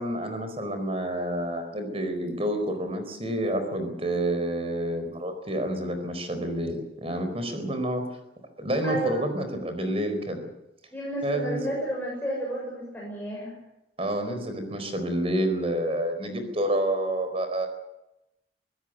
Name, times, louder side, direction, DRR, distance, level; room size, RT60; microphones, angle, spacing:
voice 1, 0.0-8.0 8.6-10.4 11.2-11.7 14.0-17.7, right 1 dB, 35° right, 8 dB, 4.5 m, -29 dB
voice 2, 8.8-9.3 10.9-13.5, right 1 dB, 10° left, -4 dB, 6.8 m, -31 dB
25.0 x 16.5 x 8.0 m, 0.91 s
head